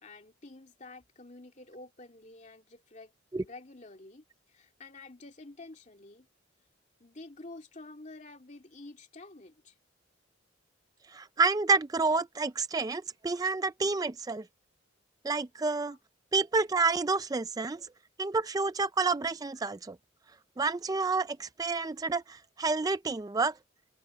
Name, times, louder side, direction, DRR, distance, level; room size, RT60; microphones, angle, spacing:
voice 1, 0.0-6.3 7.0-9.7 15.8-16.0, left 2 dB, 35° left, 2.5 m, -49 dB
voice 2, 11.1-14.4 15.2-16.0 16.3-17.8 18.2-20.0 20.6-23.5, right 3 dB, 20° right, 0.3 m, -29 dB
open air
head